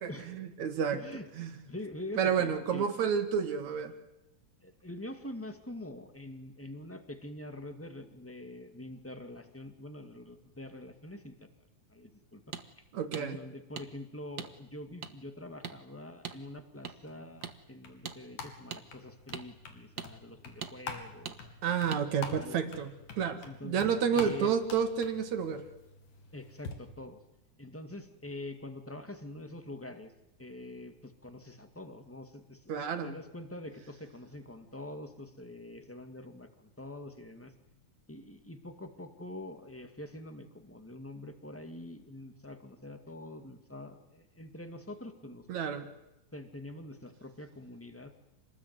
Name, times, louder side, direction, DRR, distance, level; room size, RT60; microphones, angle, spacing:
voice 1, 0.0-1.0 1.4-1.5 2.2-3.9 12.9-13.4 21.6-22.9 23.2-25.6 32.7-33.1 45.5-45.9, right 7 dB, 65° right, 8 dB, 3.0 m, -30 dB
voice 2, 0.9-1.3 1.6-2.9 4.6-11.5 11.9-12.4 12.8-12.9 13.2-21.7 22.4-22.7 23.4-24.5 26.3-27.2 27.6-30.1 30.4-37.5 38.1-45.4 46.3-48.1, left 1 dB, 5° left, 7 dB, 1.5 m, -45 dB
sound 1, 12.5-12.6 13.1-13.3 13.8-13.9 14.4-14.5 15.0-15.1 15.6-15.8 16.2-16.4 16.8-16.9 17.4-17.6 18.0-18.2 18.7-18.8 19.3-19.5 20.0-20.1 20.6-20.7 21.3-21.4 21.9-22.0, right 7 dB, 45° right, 1.4 m, -40 dB
sound 2, 17.1-26.7, left 4 dB, 90° left, 4.3 m, -47 dB
27.5 x 20.0 x 9.6 m, 0.89 s
omnidirectional pair, 3.6 m